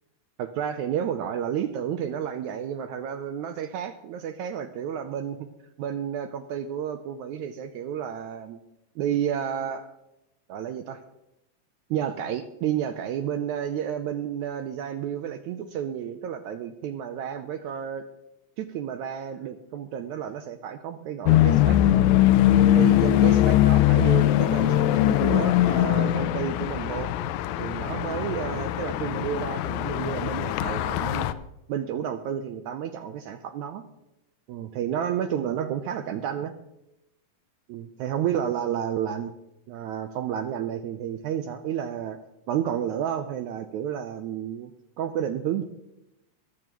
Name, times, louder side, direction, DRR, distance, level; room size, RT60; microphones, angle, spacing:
voice 1, 0.4-5.5 5.8-8.6 8.9-9.9 10.5-11.0 11.9-18.0 18.6-21.8 22.7-27.1 27.6-31.3 31.7-33.8 34.5-36.5 37.7-39.3 39.7-42.2 42.5-44.7 45.0-45.6, right 9 dB, 85° right, 9 dB, 1.7 m, -31 dB
sound 1, 21.3-31.3, left 13 dB, 85° left, 1.7 m, -21 dB
24.5 x 8.6 x 3.0 m, 0.88 s
omnidirectional pair, 3.9 m